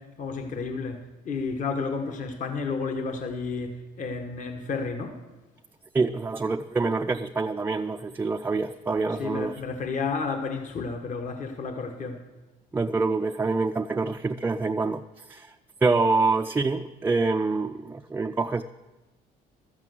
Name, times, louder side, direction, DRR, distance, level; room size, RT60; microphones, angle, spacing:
voice 1, 0.0-5.2 9.2-12.2, left 4 dB, 50° left, 1.3 m, -31 dB
voice 2, 5.9-9.6 12.7-15.6 15.8-18.6, right 3 dB, 15° right, 0.4 m, -26 dB
12.5 x 7.5 x 7.7 m
cardioid pair, 110°, 17 cm